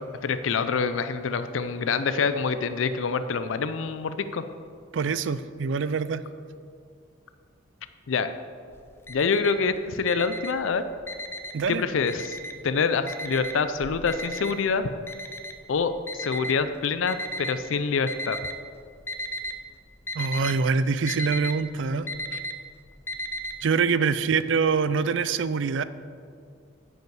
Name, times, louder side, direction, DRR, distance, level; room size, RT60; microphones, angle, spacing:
voice 1, 0.2-4.4 8.1-8.3 9.1-10.8 11.7-12.4 12.6-14.9 15.7-18.4, left 5 dB, 75° left, 11 dB, 0.4 m, -26 dB
voice 2, 4.9-6.2 11.5-11.8 20.1-22.1 23.6-25.8, right 5 dB, 65° right, 14 dB, 0.4 m, -25 dB
Alarm, 8.7-9.7 10.0-11.7 12.1-12.7 13.1-17.5 18.1-18.7 19.0-19.6 19.9-23.5, equal, 10° left, 0.4 m, -35 dB
9.4 x 7.9 x 4.7 m, 2.3 s
head